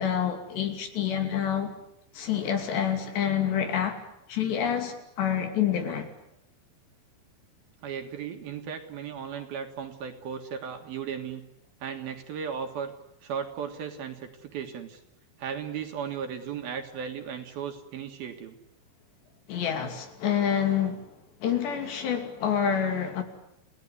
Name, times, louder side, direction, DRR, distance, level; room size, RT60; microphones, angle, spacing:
voice 1, 0.0-1.7 2.1-4.0 4.3-6.1 19.5-21.1 21.4-23.2, left 8 dB, 65° left, 6 dB, 4.8 m, -27 dB
voice 2, 7.8-11.4 11.8-12.9 13.2-15.0 15.4-18.6, right 7 dB, 60° right, 5 dB, 3.2 m, -36 dB
29.0 x 18.0 x 9.9 m, 0.82 s
omnidirectional pair, 5.4 m